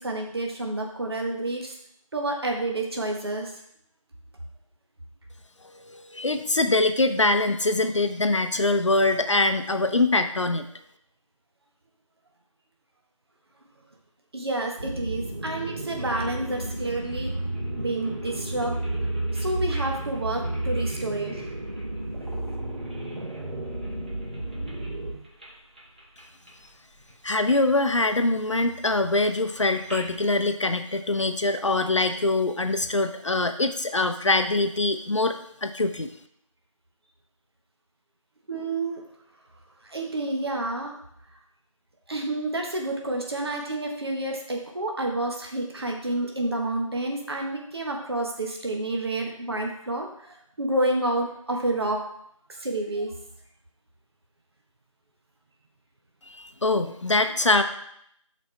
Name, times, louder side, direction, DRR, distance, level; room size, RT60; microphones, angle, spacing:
voice 1, 0.0-1.7 2.1-3.5 14.3-17.3 17.8-18.8 19.3-21.4 38.5-39.0 39.8-41.0 42.1-52.0 52.6-53.2, right 2 dB, 50° right, 1 dB, 1.1 m, -29 dB
voice 2, 5.9-10.7 27.2-35.3 35.6-36.1 56.4-57.6, left 2 dB, 60° left, 8 dB, 0.7 m, -23 dB
sound 1, 14.8-25.1, right 1 dB, 70° right, 2.5 m, -34 dB
sound 2, 16.0-23.4 23.8-24.9 25.2-25.5 25.8-26.7 27.0-27.5 27.9-30.2, right 1 dB, 15° right, 0.8 m, -35 dB
11.5 x 4.3 x 3.3 m, 0.72 s
figure-of-eight pair, 165°, 17 cm